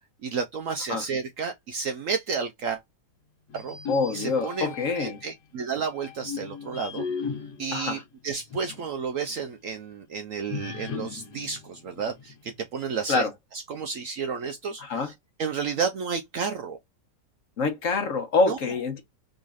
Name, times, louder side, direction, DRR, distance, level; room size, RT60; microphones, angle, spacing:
voice 1, 0.2-2.8 3.5-3.8 4.1-7.0 7.6-13.3 13.5-15.1 15.4-16.8 18.5-18.6, right 5 dB, 70° right, 0.8 m, -31 dB
sound 1, 3.5-5.3 5.9-8.9 9.3-9.4 10.5-12.6, left 6 dB, 75° left, 1.6 m, -37 dB
voice 2, 3.9-5.2 7.7-8.0 13.1-13.3 14.8-15.1 17.6-19.0, left 4 dB, 55° left, 1.2 m, -26 dB
3.9 x 3.0 x 2.5 m
omnidirectional pair, 1.8 m